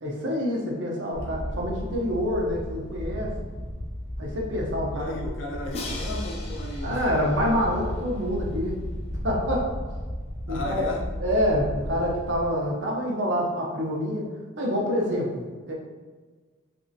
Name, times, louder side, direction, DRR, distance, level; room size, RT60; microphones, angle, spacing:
voice 1, 0.0-3.3 4.2-5.2 6.8-8.8 9.2-9.7 10.5-10.9 11.2-14.3 14.6-15.3 15.7-15.8, equal, 70° right, -2 dB, 0.7 m, -26 dB
Wind, 1.1-12.4, equal, 50° left, 0.9 m, -34 dB
voice 2, 4.9-7.1 10.5-11.1, left 1 dB, 90° left, -1 dB, 0.6 m, -34 dB
Crash cymbal, 5.7-8.7, left 2 dB, 30° left, 0.3 m, -41 dB
3.2 x 2.6 x 2.6 m, 1.4 s
head